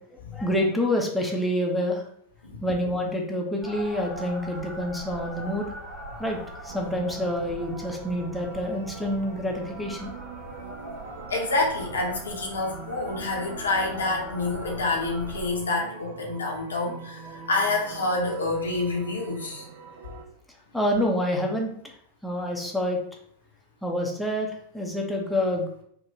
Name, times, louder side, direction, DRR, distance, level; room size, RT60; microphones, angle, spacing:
voice 1, 0.3-2.0 2.6-5.7 6.2-6.4 6.6-10.1 20.7-21.7 22.2-23.0 23.8-24.5 24.7-25.7, left 1 dB, ahead, -2 dB, 0.6 m, -27 dB
sound 1, 3.6-15.5, right 1 dB, 15° right, 1.0 m, -41 dB
sound 2, 6.7-20.2, right 5 dB, 50° right, 0.5 m, -43 dB
voice 2, 11.3-19.6, left 2 dB, 70° left, -1 dB, 0.7 m, -27 dB
3.8 x 2.1 x 2.7 m, 0.66 s
figure-of-eight pair, 90°, 0 cm